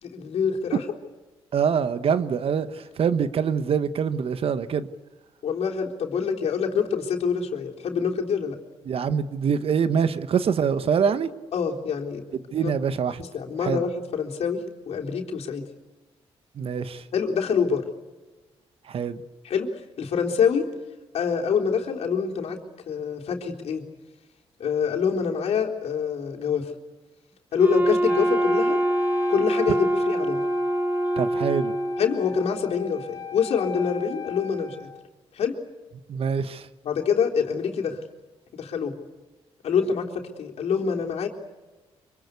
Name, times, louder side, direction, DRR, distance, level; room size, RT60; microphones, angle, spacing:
voice 1, 0.0-0.8 5.4-8.6 11.5-12.2 12.6-12.7 13.2-15.6 17.1-17.9 19.4-20.7 21.1-22.6 22.9-23.8 24.6-26.7 27.5-28.8 29.3-30.4 32.0-34.9 35.3-35.6 36.8-38.0 38.5-38.9 39.6-41.3, left 6 dB, 70° left, 3.8 m, -26 dB
voice 2, 1.5-4.9 8.9-11.3 12.5-13.2 13.6-13.8 16.6-17.0 18.9-19.2 31.2-31.7 36.1-36.7, right 7 dB, 60° right, 1.4 m, -24 dB
Wind instrument woodwind instrument, 27.6-32.3, right 1 dB, 20° right, 1.0 m, -24 dB
Wind instrument woodwind instrument 2, 28.1-35.0, left 5 dB, 25° left, 2.5 m, -36 dB
26.0 x 24.5 x 8.4 m
cardioid pair, 95°, 11 cm